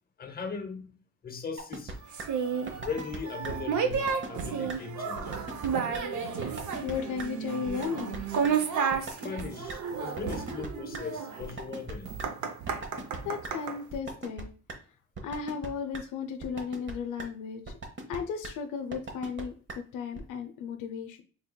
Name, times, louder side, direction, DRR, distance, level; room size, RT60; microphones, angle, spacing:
voice 1, 0.2-1.0 1.2-2.0 2.8-5.4 9.2-12.2, left 5 dB, 30° left, 0.7 m, -39 dB
sound 1, 1.6-2.2 2.7-3.2 3.4-3.5 3.9-4.4 4.7-4.8 5.2-5.7 5.9-6.0 6.4-6.9 7.2-7.3 7.7-8.2 8.4-8.5 8.9-9.4 9.7-9.8 10.2-11.0 11.4-12.3 12.7-13.2 13.4-13.5 13.9-14.4 14.7-14.8 15.2-15.7 15.9-16.0 16.4-16.9 17.2-17.3 17.7-18.2 18.4-18.5 18.9-19.4 19.7-19.8 20.2-20.3, right 3 dB, 40° right, 0.9 m, -38 dB
sound 2, 2.1-13.8, right 6 dB, 75° right, 0.7 m, -32 dB
voice 2, 6.3-8.2 13.2-14.5 15.2-17.6 18.1-21.2, left 6 dB, 85° left, 0.5 m, -35 dB
3.6 x 3.3 x 2.2 m
cardioid pair, 90°, 30 cm